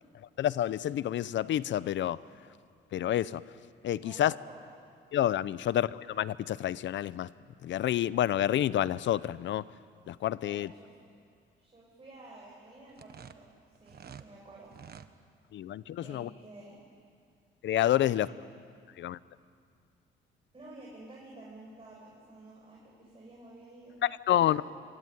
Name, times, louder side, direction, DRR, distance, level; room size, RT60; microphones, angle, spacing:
voice 1, 0.4-2.2 2.9-3.4 3.8-4.3 5.1-7.3 7.6-9.7 10.1-10.7 15.5-16.3 17.6-18.3 19.0-19.2 24.0-24.6, left 12 dB, 70° left, 18 dB, 0.7 m, -28 dB
voice 2, 4.0-4.6 5.6-5.7 10.4-10.9 11.6-14.7 16.0-16.8 18.0-18.3 20.5-24.0 24.3-24.6, right 2 dB, 30° right, -4 dB, 7.6 m, -51 dB
sound 1, 12.9-14.3 14.7-15.1, right 8 dB, 50° right, 1.3 m, -49 dB
26.0 x 24.0 x 9.3 m, 2.3 s
cardioid pair, 90°, 20 cm